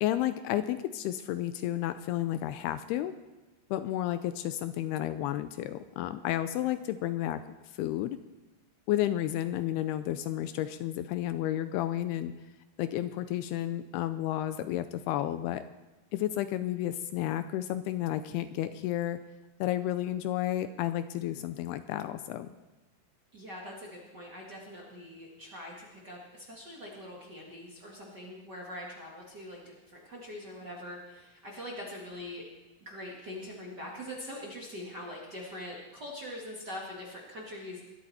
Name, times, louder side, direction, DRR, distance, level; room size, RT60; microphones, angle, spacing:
voice 1, 0.0-3.2 3.7-7.4 7.7-8.2 8.9-12.3 12.8-15.6 16.1-19.2 19.6-22.5, left 13 dB, 80° left, 11 dB, 2.4 m, -31 dB
voice 2, 23.3-32.4 32.8-37.8, left 1 dB, 35° right, -4 dB, 1.7 m, -43 dB
21.0 x 13.0 x 4.2 m, 1.1 s
omnidirectional pair, 4.8 m